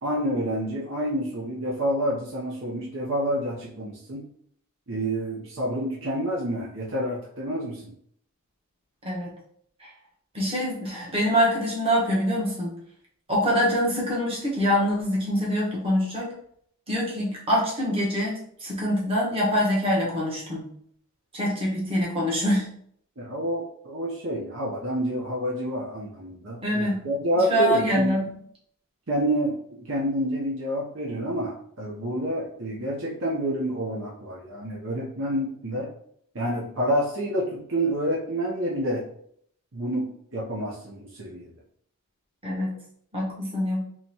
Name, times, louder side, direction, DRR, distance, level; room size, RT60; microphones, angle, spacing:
voice 1, 0.0-4.2 4.9-7.9 23.2-28.2 29.1-35.9 36.3-39.0 39.7-40.1 40.3-41.5, right 1 dB, 60° right, -4 dB, 0.7 m, -28 dB
voice 2, 10.3-12.7 13.3-16.3 16.9-20.7 21.3-22.7 26.6-27.0 27.3-28.3 42.4-42.7 43.1-43.8, equal, 25° right, -5 dB, 1.1 m, -25 dB
3.9 x 2.9 x 2.8 m, 0.66 s
head